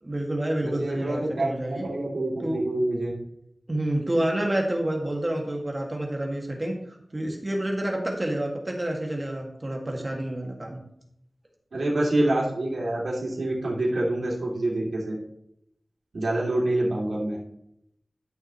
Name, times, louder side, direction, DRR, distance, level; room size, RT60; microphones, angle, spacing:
voice 1, 0.0-1.9 2.4-2.7 3.7-10.8, right 1 dB, 30° right, 0 dB, 1.9 m, -28 dB
voice 2, 0.6-3.1 11.7-15.1 16.1-17.4, right 1 dB, 85° right, -4 dB, 2.7 m, -26 dB
11.5 x 6.5 x 3.0 m, 0.74 s
wide cardioid pair, 70°, 0 cm